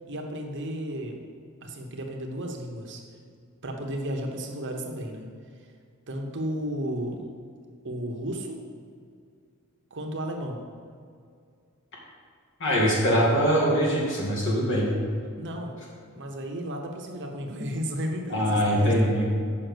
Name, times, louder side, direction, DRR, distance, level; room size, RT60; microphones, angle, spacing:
voice 1, 0.1-1.2 1.6-3.0 3.6-5.2 6.1-7.2 7.8-8.6 9.9-10.6 15.4-15.7 16.1-19.2, equal, 55° right, 2 dB, 1.0 m, -33 dB
voice 2, 12.6-14.9 18.3-19.2, equal, 60° left, -4 dB, 2.3 m, -22 dB
6.6 x 5.6 x 6.2 m, 2.3 s
head